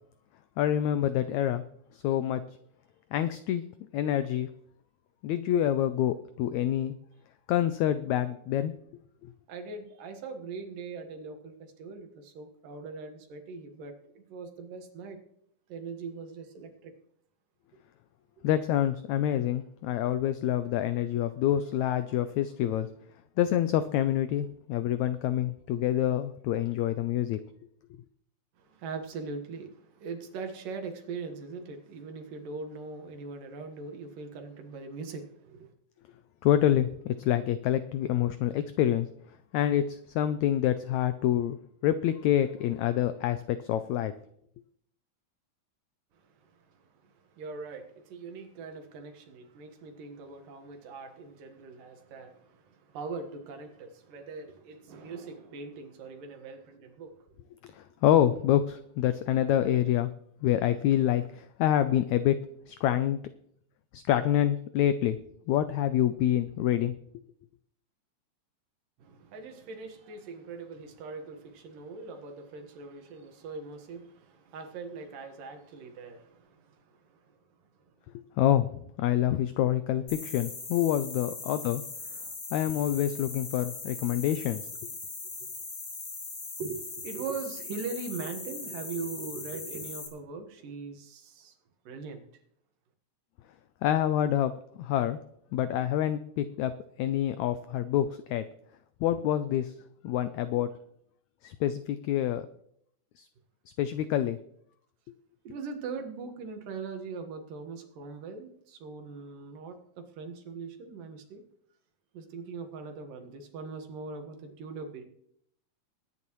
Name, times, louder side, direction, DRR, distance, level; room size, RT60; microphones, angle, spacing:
voice 1, 0.6-1.6 1.9-2.4 3.1-3.6 3.9-4.5 5.2-6.9 7.5-8.7 18.4-22.9 23.4-27.4 36.4-39.1 39.5-44.1 57.7-60.1 60.4-62.3 62.7-63.2 63.9-65.2 65.5-66.9 78.4-81.8 82.5-84.6 93.8-95.2 95.5-96.7 97.0-98.5 99.0-99.7 100.0-100.7 101.4-102.5 103.2-103.3 103.8-104.4, left 11 dB, 85° left, 12 dB, 1.6 m, -27 dB
voice 2, 9.5-15.2 15.7-16.9 28.6-35.7 46.1-57.2 69.0-77.4 77.8-77.9 85.4-85.5 86.6-91.6 91.8-92.2 105.4-111.4 112.1-115.0, right 4 dB, 80° right, 5 dB, 3.2 m, -41 dB
sound 1, 80.1-90.1, left 3 dB, 30° left, 1.9 m, -40 dB
20.5 x 9.7 x 3.1 m, 0.69 s
omnidirectional pair, 3.9 m